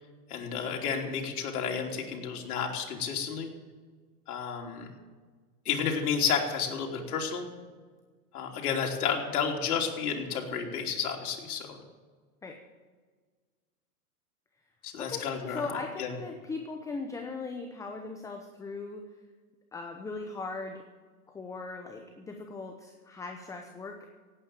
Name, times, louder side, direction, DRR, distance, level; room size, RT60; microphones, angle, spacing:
voice 1, 0.3-3.5 4.3-4.9 5.6-7.5 8.3-11.8 14.8-15.6 16.0-16.1, left 6 dB, 70° left, 1 dB, 3.4 m, -31 dB
voice 2, 15.0-19.0 19.7-20.9 21.3-24.1, left 3 dB, 5° left, 4 dB, 0.8 m, -39 dB
16.5 x 9.0 x 7.5 m, 1.5 s
hypercardioid pair, 135°, 46 cm